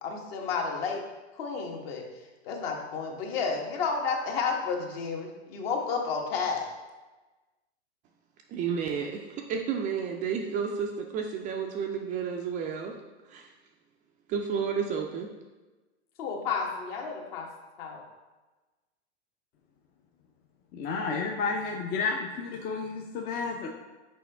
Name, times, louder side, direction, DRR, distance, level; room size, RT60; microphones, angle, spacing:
voice 1, 0.0-1.0 1.4-2.1 2.4-6.7 16.2-17.5 17.8-18.0, left 5 dB, 55° left, 1 dB, 1.4 m, -31 dB
voice 2, 8.5-12.9 13.3-13.5 14.3-15.3, right 6 dB, 25° right, 2 dB, 0.4 m, -31 dB
voice 3, 20.7-23.7, left 4 dB, 25° left, 1 dB, 0.5 m, -31 dB
6.1 x 4.5 x 3.4 m, 1.2 s
hypercardioid pair, 115°, 34 cm